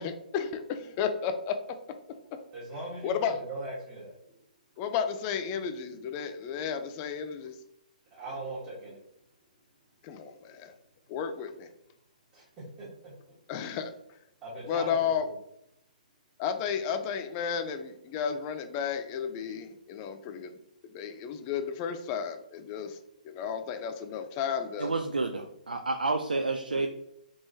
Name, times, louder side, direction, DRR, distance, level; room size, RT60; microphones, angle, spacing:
voice 1, 0.0-1.8 3.0-3.4 4.8-7.6 10.0-10.7 11.1-11.7 13.5-13.9 14.7-15.2 16.4-20.6 20.9-23.0 23.2-24.9 26.7-26.9, left 7 dB, 30° left, 8 dB, 0.4 m, -33 dB
voice 2, 2.5-4.1 8.1-9.0 12.3-13.1 14.4-15.1, right 2 dB, 25° right, -9 dB, 1.3 m, -40 dB
voice 3, 24.8-26.9, right 3 dB, 85° right, 5 dB, 0.3 m, -29 dB
3.6 x 3.0 x 2.7 m, 0.78 s
figure-of-eight pair, 130°, 5 cm